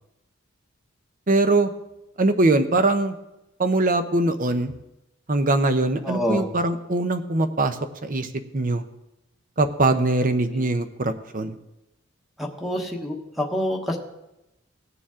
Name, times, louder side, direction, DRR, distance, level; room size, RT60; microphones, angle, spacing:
voice 1, 1.3-1.7 2.2-3.1 3.6-4.7 5.3-8.8 9.6-11.6, right 2 dB, 40° right, 10 dB, 0.8 m, -22 dB
voice 2, 6.0-6.4 12.4-14.0, equal, ahead, 1 dB, 1.1 m, -27 dB
18.0 x 6.9 x 3.7 m, 0.93 s
head